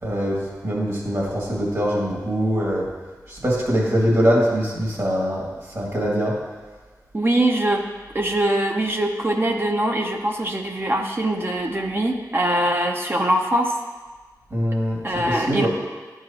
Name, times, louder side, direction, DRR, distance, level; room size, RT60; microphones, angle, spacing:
voice 1, 0.0-2.8 3.3-6.3 14.5-15.0 15.3-15.7, equal, 50° right, -5 dB, 2.2 m, -23 dB
voice 2, 7.1-7.9 8.1-13.7 15.0-15.7, right 1 dB, 35° right, 2 dB, 0.6 m, -22 dB
11.0 x 4.8 x 2.8 m, 1.4 s
wide cardioid pair, 55°, 7 cm